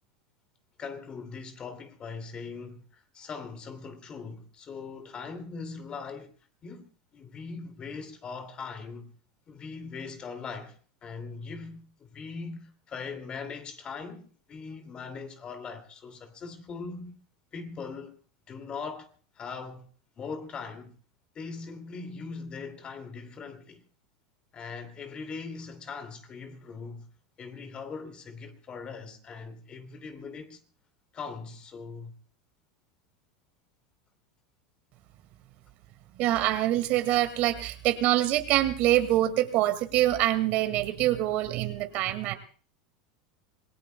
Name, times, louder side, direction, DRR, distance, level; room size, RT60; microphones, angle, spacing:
voice 1, 0.8-6.3 6.6-6.9 7.1-9.1 9.5-10.8 11.0-17.2 17.5-18.2 18.5-19.9 20.2-20.9 21.3-23.8 24.5-27.1 27.4-30.6 31.1-32.1, left 5 dB, 30° left, 2.4 m, -40 dB
voice 2, 36.1-42.4, right 14 dB, 55° right, 2.1 m, -25 dB
26.5 x 18.0 x 2.2 m
hypercardioid pair, 100°, 3 cm